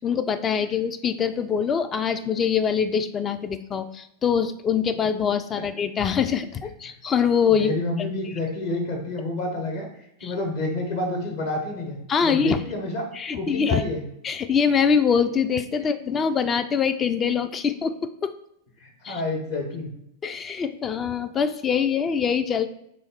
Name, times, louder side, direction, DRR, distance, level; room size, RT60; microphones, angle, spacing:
voice 1, 0.0-7.8 10.2-10.3 12.1-12.6 13.1-13.8 14.2-18.4 19.0-19.2 20.2-22.7, left 7 dB, 25° left, 9 dB, 0.3 m, -24 dB
voice 2, 7.5-13.1 13.3-14.0 16.0-16.1 18.8-19.9, left 2 dB, 55° left, 2 dB, 1.0 m, -29 dB
3.3 x 3.1 x 4.5 m, 0.76 s
figure-of-eight pair, 90°, 0 cm